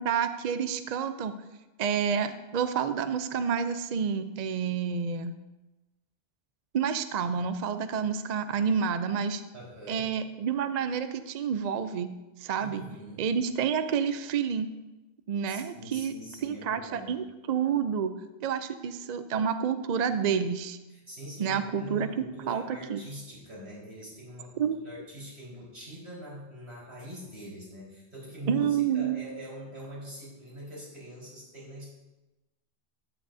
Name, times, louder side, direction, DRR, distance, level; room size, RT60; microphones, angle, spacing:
voice 1, 0.0-1.3 1.8-5.3 6.7-9.4 9.9-12.1 12.4-12.8 13.2-14.7 15.3-16.1 16.4-18.1 18.4-20.8 21.4-22.1 22.5-23.0 24.6-24.8 28.5-29.2, right 7 dB, 50° right, 10 dB, 0.5 m, -29 dB
voice 2, 9.5-10.0 12.6-13.2 15.5-17.1 20.9-31.8, equal, 80° right, -6 dB, 4.5 m, -43 dB
13.0 x 10.5 x 2.6 m, 1.0 s
omnidirectional pair, 1.1 m